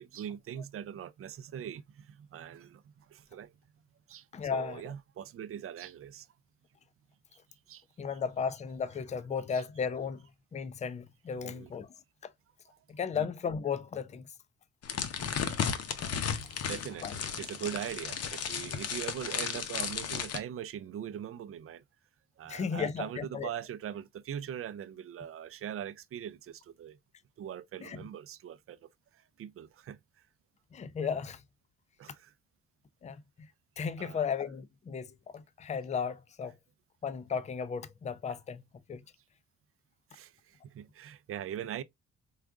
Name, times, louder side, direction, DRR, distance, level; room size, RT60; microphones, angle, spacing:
voice 1, 0.0-2.8 3.1-3.5 4.1-4.2 4.5-6.3 7.7-7.8 9.5-9.6 11.4-11.7 12.7-12.8 13.1-13.3 16.7-21.8 22.4-27.0 27.4-28.8 29.4-30.0 32.0-32.3 34.0-34.2 40.1-41.8, right 9 dB, 50° right, 0.4 m, -41 dB
voice 2, 4.3-4.8 8.0-10.2 10.5-11.9 12.2-12.3 12.9-14.2 17.0-17.1 22.5-23.5 27.8-28.0 30.7-31.4 33.0-33.5 33.8-35.1 35.3-36.5 37.0-38.6 38.9-39.0, left 6 dB, 25° left, 0.4 m, -35 dB
sound 1, 14.8-20.4, left 7 dB, 55° left, 0.7 m, -34 dB
4.6 x 2.4 x 2.4 m
cardioid pair, 90°, 30 cm